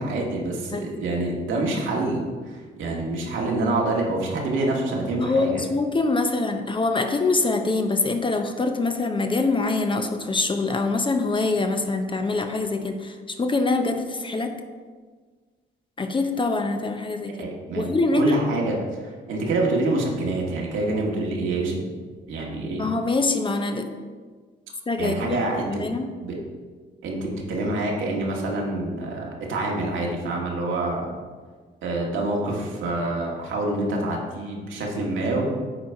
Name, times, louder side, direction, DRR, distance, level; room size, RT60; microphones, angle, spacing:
voice 1, 0.0-2.3 2.8-5.6 17.4-17.8 18.1-18.8 19.3-21.8 22.3-22.8 25.0-25.8 26.2-26.3 27.0-31.1 31.8-35.5, right 2 dB, 80° right, -2 dB, 1.8 m, -26 dB
voice 2, 5.1-14.6 16.0-17.5 17.8-18.4 22.8-23.9 24.9-25.4 25.7-26.1, left 3 dB, 25° left, 6 dB, 0.7 m, -24 dB
8.8 x 4.1 x 4.7 m, 1.5 s
cardioid pair, 90°, 20 cm